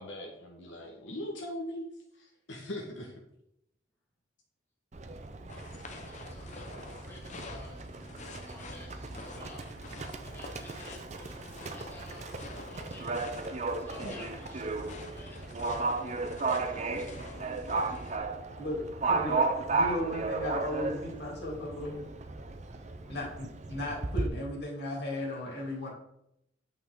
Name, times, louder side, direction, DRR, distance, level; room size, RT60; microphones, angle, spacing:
voice 1, 0.0-3.2, left 1 dB, 80° left, -1 dB, 1.4 m, -40 dB
Livestock farm animals working animals, 4.9-24.3, right 3 dB, 35° right, 0.6 m, -35 dB
sound 1, 5.5-18.2, left 2 dB, 40° left, 0.9 m, -48 dB
voice 2, 5.9-7.8 8.2-9.6 10.2-15.6 23.0-23.2 25.3-25.4, left 2 dB, 10° left, -4 dB, 1.8 m, -53 dB
voice 3, 18.6-22.1 23.1-25.9, left 1 dB, 60° left, -3 dB, 2.9 m, -36 dB
8.9 x 5.4 x 3.7 m, 0.80 s
head